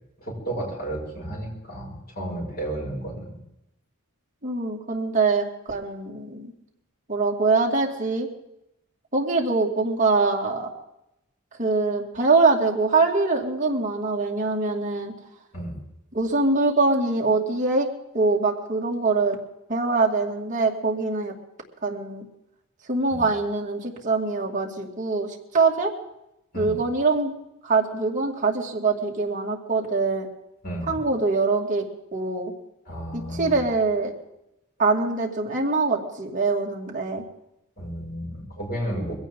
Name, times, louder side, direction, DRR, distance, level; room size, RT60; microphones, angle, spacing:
voice 1, 0.2-3.3 15.5-15.8 23.1-23.2 26.5-26.7 30.6-31.0 32.8-33.6 37.8-39.1, right 1 dB, 45° left, -3 dB, 6.2 m, -32 dB
voice 2, 4.4-6.5 7.1-8.3 9.1-10.7 11.6-15.1 16.1-17.9 18.1-19.4 19.7-21.3 21.8-22.3 22.9-25.9 26.5-27.3 27.6-30.3 30.9-31.9 32.1-32.5 33.1-34.1 34.8-37.2, right 3 dB, 35° right, -1 dB, 2.4 m, -23 dB
22.0 x 16.5 x 3.8 m, 0.86 s
head